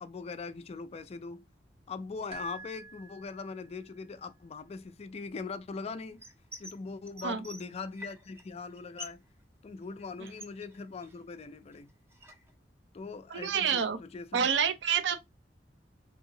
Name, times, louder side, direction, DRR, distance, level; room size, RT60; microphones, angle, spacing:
voice 1, 0.0-1.4 1.9-6.2 6.6-9.2 9.6-11.9 12.9-14.5, left 4 dB, 35° left, 0.3 m, -41 dB
sound 1, 2.3-3.9, right 3 dB, 35° right, 1.1 m, -47 dB
sound 2, 6.2-6.8 7.1-8.4 8.7-9.3 9.5-11.4 11.7-12.5, left 1 dB, 15° right, 0.6 m, -47 dB
voice 2, 13.3-14.0 14.3-15.2, right 7 dB, 85° right, 0.5 m, -28 dB
2.9 x 2.7 x 2.6 m
head